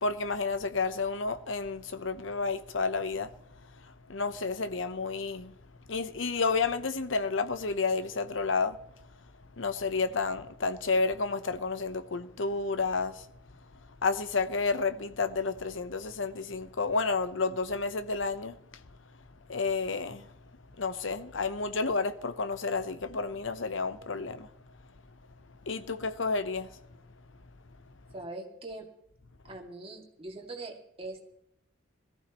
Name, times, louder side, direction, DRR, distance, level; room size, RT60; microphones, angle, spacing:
voice 1, 0.0-3.3 4.1-5.5 5.9-8.8 9.6-13.3 14.0-18.6 19.5-20.3 20.8-24.5 25.7-26.7, left 4 dB, 90° left, 0.9 m, -30 dB
voice 2, 28.1-28.9 29.4-31.2, right 2 dB, 30° right, 2.3 m, -42 dB
21.0 x 14.5 x 3.0 m
head